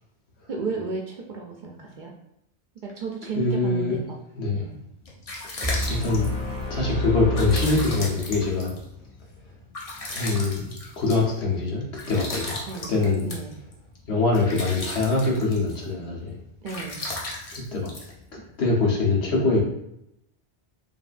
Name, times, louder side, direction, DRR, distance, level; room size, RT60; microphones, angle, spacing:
voice 1, 0.5-2.1 2.8-4.2 4.5-4.7 12.6-12.9 13.2-13.5 16.6-17.1 18.4-18.5, right 5 dB, 55° right, 1 dB, 0.6 m, -34 dB
voice 2, 3.3-4.0 4.4-4.6 6.0-6.3 6.7-8.7 10.1-12.6 12.9-13.3 14.1-16.4 17.7-17.9 18.6-19.6, left 3 dB, 80° left, -3 dB, 1.3 m, -23 dB
sound 1, 4.8-18.8, left 2 dB, 40° left, 0.7 m, -37 dB
sound 2, 5.6-8.7, equal, 5° left, 0.8 m, -29 dB
5.3 x 2.7 x 2.5 m, 0.79 s
omnidirectional pair, 1.1 m